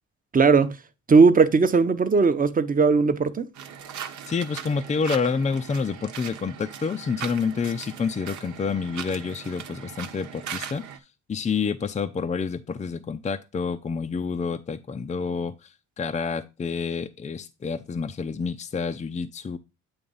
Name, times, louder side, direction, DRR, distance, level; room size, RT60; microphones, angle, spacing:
voice 1, 0.3-0.7 1.1-3.5, right 4 dB, 30° right, 0.8 m, -18 dB
sound 1, 3.5-11.0, right 8 dB, 70° right, 1.0 m, -39 dB
voice 2, 4.3-10.8 11.3-19.6, left 5 dB, 25° left, 0.5 m, -28 dB
8.6 x 2.9 x 5.4 m
cardioid pair, 90°, 30 cm